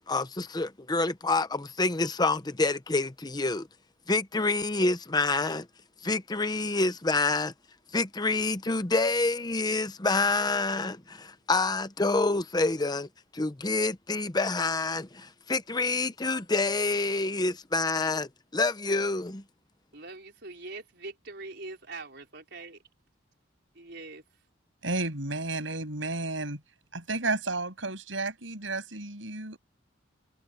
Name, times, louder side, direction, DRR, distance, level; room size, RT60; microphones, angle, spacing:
voice 1, 0.1-3.7 4.1-5.7 6.0-7.5 7.9-19.4, left 3 dB, 20° left, 0.8 m, -27 dB
voice 2, 19.9-22.8 23.7-24.2, right 3 dB, 60° right, 4.8 m, -43 dB
voice 3, 24.8-26.6 26.9-29.6, right 2 dB, 85° right, 7.5 m, -32 dB
head